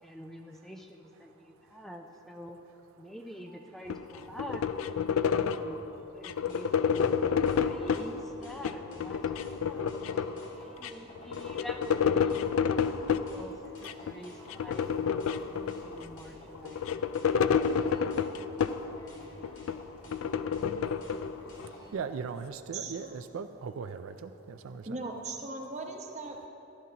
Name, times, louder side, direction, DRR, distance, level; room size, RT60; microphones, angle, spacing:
voice 1, 0.0-2.6 3.0-4.6 5.4-5.9 6.1-9.9 10.5-14.9 15.5-16.8, equal, ahead, 2 dB, 0.4 m, -46 dB
voice 2, 1.4-1.8 3.5-3.7 4.2-4.3 5.1-6.4 9.6-9.7 10.2-11.1 11.4-11.7 12.2-13.4 13.9-14.3 15.8-16.0 17.7-17.8 18.9-19.0 20.8-25.0, right 5 dB, 70° right, 9 dB, 0.4 m, -43 dB
sound 1, 3.9-5.8 6.2-8.1 8.5-10.5 10.8-10.9 11.2-13.3 13.8-14.1 14.5-16.1 16.5-19.0 19.4-21.7, left 7 dB, 70° left, 0.4 m, -29 dB
sound 2, 6.5-21.9, left 1 dB, 55° left, 2.3 m, -51 dB
voice 3, 22.7-23.1 24.9-26.5, right 3 dB, 30° right, 2 dB, 0.9 m, -38 dB
14.5 x 12.0 x 2.9 m, 2.9 s
head